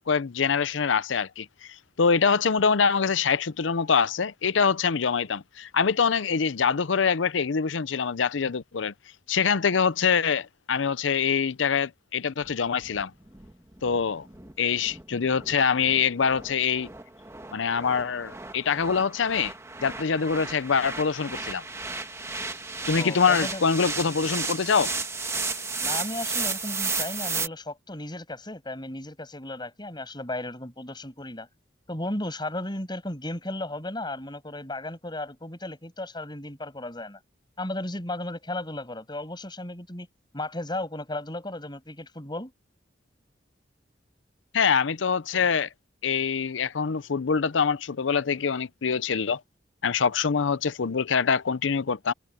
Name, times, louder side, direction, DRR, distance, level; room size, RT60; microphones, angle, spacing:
voice 1, 0.1-8.9 9.3-13.1 13.8-14.3 14.6-16.9 17.5-19.5 19.8-21.6 22.9-24.9 44.5-45.7 46.0-49.4 49.8-52.1, left 6 dB, 85° left, 0.6 m, -24 dB
sound 1, 12.4-27.5, right 4 dB, 15° right, 1.4 m, -34 dB
voice 2, 23.0-23.6 25.8-31.5 31.9-37.2 37.6-40.1 40.3-42.5, left 1 dB, 25° left, 6.7 m, -35 dB
head